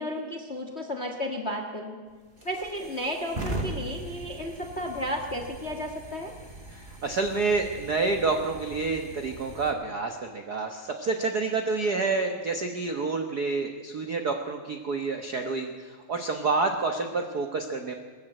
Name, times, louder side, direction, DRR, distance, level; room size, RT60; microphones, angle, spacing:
voice 1, 0.0-2.0 2.4-6.3, equal, 40° left, 4 dB, 0.9 m, -33 dB
sound 1, 2.1-9.7, right 2 dB, 20° right, 2.1 m, -40 dB
voice 2, 6.7-17.9, right 3 dB, 85° right, 5 dB, 0.8 m, -28 dB
21.0 x 14.0 x 9.0 m, 1.5 s
omnidirectional pair, 3.7 m